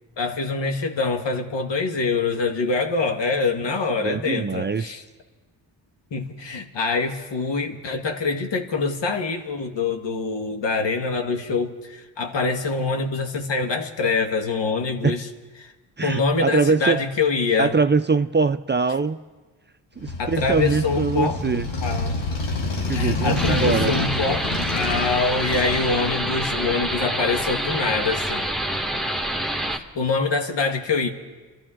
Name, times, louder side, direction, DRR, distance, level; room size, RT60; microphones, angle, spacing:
voice 1, 0.2-5.0 6.1-15.3 15.6-15.7 16.0-17.7 20.2-21.4 21.8-22.2 22.9-28.5 29.9-31.1, left 4 dB, 70° left, 5 dB, 1.7 m, -25 dB
voice 2, 4.0-4.9 15.0-15.1 16.0-17.0 17.6-19.2 20.0-21.7 22.9-23.9, right 4 dB, 25° right, 11 dB, 0.5 m, -22 dB
Motorcycle, 20.0-26.7, left 3 dB, 90° left, 2.5 m, -28 dB
sound 1, 23.3-29.8, right 1 dB, ahead, 1.5 m, -27 dB
26.0 x 13.0 x 3.8 m, 1.3 s
cardioid pair, 55°, 45 cm